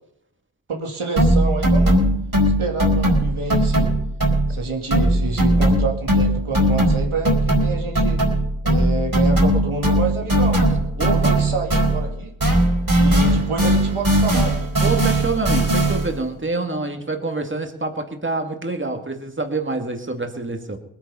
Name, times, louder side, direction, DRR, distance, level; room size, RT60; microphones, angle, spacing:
voice 1, 0.7-2.0 2.6-3.9 4.5-8.2 8.6-10.6 11.0-12.3 12.9-14.6, right 3 dB, 85° right, 1 dB, 2.5 m, -28 dB
sound 1, 1.2-4.6 4.9-12.1 12.4-16.2, right 1 dB, 45° right, 4.5 m, -19 dB
voice 2, 11.0-11.3 14.8-20.8, right 3 dB, 25° right, 5 dB, 2.1 m, -26 dB
20.0 x 9.2 x 5.6 m, 0.76 s
cardioid pair, 50°, 49 cm